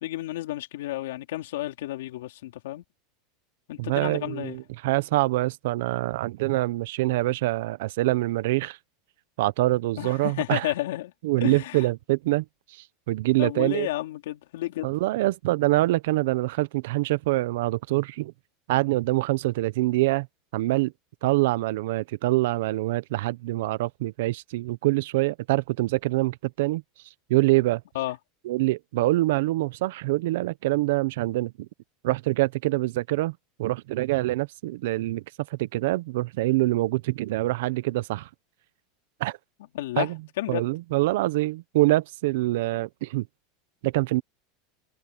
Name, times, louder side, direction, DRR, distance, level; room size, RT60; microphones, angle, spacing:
voice 1, 0.0-2.8 3.7-4.6 10.0-11.1 11.4-11.9 13.4-14.9 27.9-28.2 39.7-40.7, left 16 dB, 85° left, 3.8 m, -31 dB
voice 2, 3.8-8.8 9.4-10.7 11.2-12.4 12.7-13.9 14.8-18.3 18.7-20.3 20.5-20.9 21.2-26.8 27.3-27.8 28.4-31.7 32.0-35.2 35.5-38.3 39.2-39.4 40.0-40.2 40.5-43.3 43.8-44.2, right 19 dB, 75° right, 0.8 m, -25 dB
supercardioid pair, 150°, 0 cm